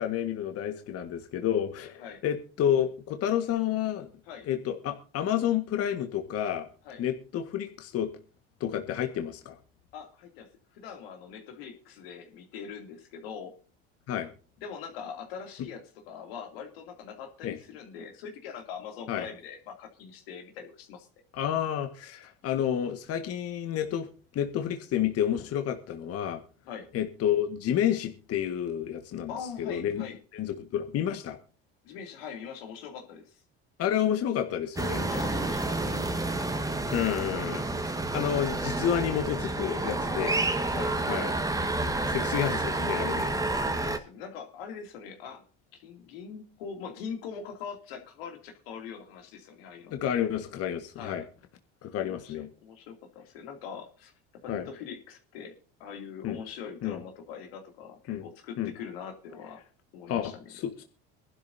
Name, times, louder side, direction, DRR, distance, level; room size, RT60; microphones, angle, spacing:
voice 1, 0.0-4.1 4.5-6.7 7.0-8.1 8.6-9.5 14.1-14.3 17.4-17.6 19.1-19.3 21.3-24.1 24.3-26.4 26.9-29.3 29.6-30.0 30.3-31.4 33.8-35.1 36.9-40.3 41.1-41.3 42.1-43.3 49.9-51.2 51.8-52.5 54.5-54.7 56.2-56.4 56.8-57.0 58.1-58.2 58.6-58.7 60.1-60.8, left 10 dB, 55° left, 6 dB, 1.6 m, -30 dB
voice 2, 1.8-2.2 4.3-4.5 6.8-7.0 9.9-13.5 14.6-21.1 26.7-26.9 29.3-30.2 31.8-33.4 35.1-36.4 40.2-40.4 40.7-41.0 43.7-45.4 45.7-50.2 51.0-51.2 52.1-52.4 52.6-55.5 55.8-59.6 59.9-60.5, left 6 dB, 85° left, 4 dB, 2.7 m, -42 dB
sound 1, 34.8-44.0, right 2 dB, 10° right, 1.5 m, -29 dB
23.0 x 12.0 x 2.7 m, 0.37 s
supercardioid pair, 90°, 29 cm